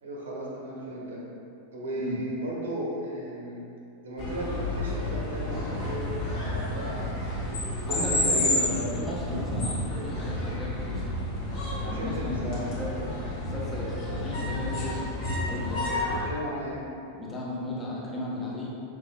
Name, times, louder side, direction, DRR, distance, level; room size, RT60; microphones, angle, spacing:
voice 1, 0.0-1.2 1.7-3.6 4.0-8.5 11.9-12.7 16.3-16.8, right 1 dB, 65° right, -4 dB, 0.9 m, -35 dB
sound 1, 4.2-16.2, left 1 dB, 45° left, 1.3 m, -30 dB
voice 2, 7.9-11.0 11.8-13.0 13.4-15.1 15.5-16.0 17.2-18.7, left 1 dB, 15° left, -6 dB, 1.0 m, -35 dB
5.7 x 3.6 x 2.3 m, 2.6 s
figure-of-eight pair, 90°, 0 cm